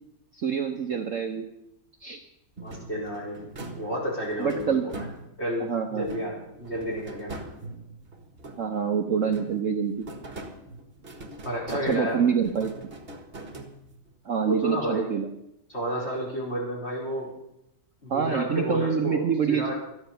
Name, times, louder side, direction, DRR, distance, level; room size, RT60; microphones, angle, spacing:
voice 1, 0.3-1.4 2.0-2.2 4.4-4.8 5.6-6.1 8.6-10.0 11.8-12.7 14.2-15.3 18.1-19.7, right 7 dB, 50° right, 4 dB, 1.1 m, -26 dB
voice 2, 2.6-3.4 3.8-5.0 5.4-7.4 11.4-12.2 14.5-15.1 15.7-17.3 18.0-19.7, equal, 35° left, -4 dB, 4.8 m, -31 dB
sound 1, 2.6-5.6 6.0-8.9 9.2-14.2, right 2 dB, 35° right, 1.5 m, -42 dB
13.5 x 10.0 x 6.9 m, 0.83 s
omnidirectional pair, 2.0 m